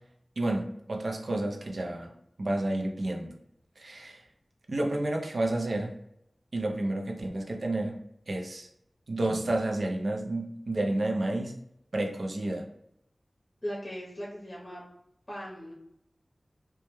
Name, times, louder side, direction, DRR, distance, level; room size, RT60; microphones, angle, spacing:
voice 1, 0.4-2.1 2.4-3.4 3.8-4.2 4.7-5.9 6.5-8.0 8.3-8.7 9.1-11.5 11.9-12.7, right 1 dB, 65° right, 1 dB, 0.4 m, -30 dB
voice 2, 13.6-14.8 15.3-15.7, equal, 30° left, -5 dB, 0.7 m, -38 dB
2.1 x 2.1 x 2.9 m, 0.78 s
wide cardioid pair, 70°, 0 cm